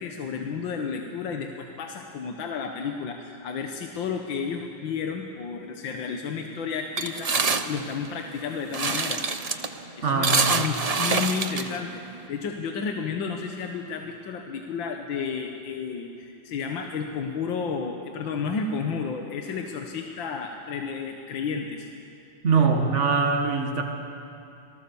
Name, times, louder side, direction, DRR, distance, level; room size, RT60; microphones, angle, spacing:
voice 1, 0.0-9.2 10.0-21.9, left 5 dB, 75° left, 3 dB, 1.9 m, -32 dB
sound 1, 7.0-12.3, right 4 dB, 60° right, 0.4 m, -26 dB
voice 2, 10.0-10.5 22.4-23.8, right 5 dB, 40° right, 3 dB, 2.1 m, -22 dB
27.0 x 18.5 x 7.0 m, 2.7 s
omnidirectional pair, 2.1 m